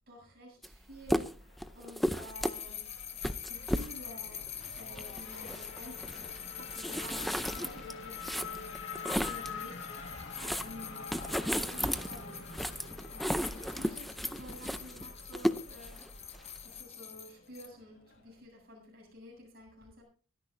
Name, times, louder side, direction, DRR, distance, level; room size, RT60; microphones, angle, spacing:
voice 1, 0.1-2.9 3.5-10.3 10.6-11.1 11.4-12.4 13.1-16.0 16.6-20.0, equal, 50° right, -2 dB, 8.0 m, -51 dB
sound 1, 0.6-0.8 1.0-9.6 10.0-16.8, equal, ahead, 0.6 m, -35 dB
Race car auto racing / Accelerating revving vroom, 1.4-18.4, left 5 dB, 65° left, 2.2 m, -47 dB
sound 2, 2.3-17.7, left 9 dB, 35° left, 1.1 m, -46 dB
23.5 x 10.5 x 2.7 m, 0.37 s
head